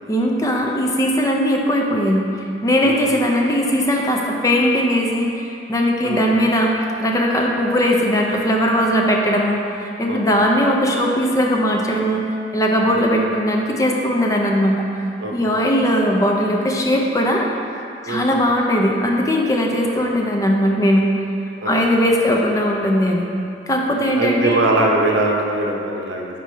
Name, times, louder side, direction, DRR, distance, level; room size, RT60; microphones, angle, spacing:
voice 1, 0.1-2.3 2.6-12.2 12.5-14.8 15.3-17.5 18.0-21.1 21.6-23.3 23.7-24.6, equal, 20° left, 0 dB, 0.4 m, -19 dB
voice 2, 15.2-15.6 18.1-18.2 19.7-20.1 21.6-21.8 23.9-26.4, right 2 dB, 75° right, -1 dB, 0.8 m, -22 dB
4.8 x 4.0 x 5.4 m, 2.6 s
head